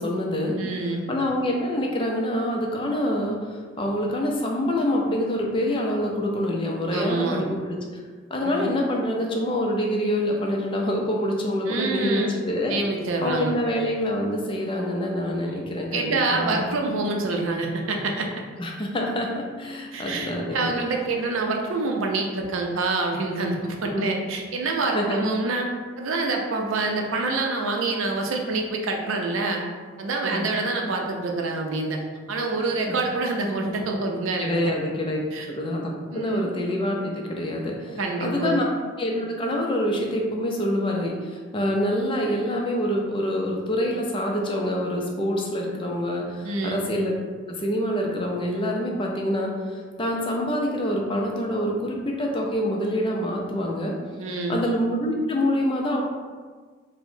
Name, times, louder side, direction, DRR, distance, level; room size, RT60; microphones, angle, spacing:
voice 1, 0.0-0.6 1.1-8.0 8.3-12.7 13.2-16.7 18.6-20.8 23.9-24.1 24.9-25.2 30.2-30.5 32.9-33.0 34.4-35.2 35.5-38.6 39.0-47.2 47.5-54.0 54.5-56.0, left 1 dB, 25° left, -1 dB, 0.4 m, -26 dB
voice 2, 0.6-1.1 6.9-7.4 8.4-8.7 11.7-12.3 12.7-13.5 15.5-15.6 15.9-18.3 19.9-25.7 26.0-29.6 30.0-32.0 32.3-34.7 35.3-35.5 36.1-36.5 37.9-38.6 46.4-46.8 54.2-54.6, right 3 dB, 85° right, 1 dB, 0.5 m, -26 dB
4.5 x 2.1 x 2.6 m, 1.5 s
head